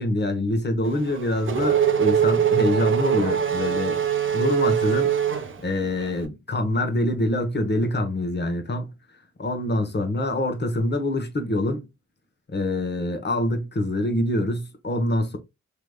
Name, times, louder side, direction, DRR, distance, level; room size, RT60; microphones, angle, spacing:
voice 1, 0.0-4.0 4.3-8.9 9.4-11.8 12.5-15.4, left 1 dB, 35° left, 1.0 m, -25 dB
Race car auto racing / Accelerating revving vroom, 0.9-6.1, right 8 dB, 40° right, 0.7 m, -23 dB
3.5 x 3.0 x 2.2 m
cardioid pair, 75°, 30 cm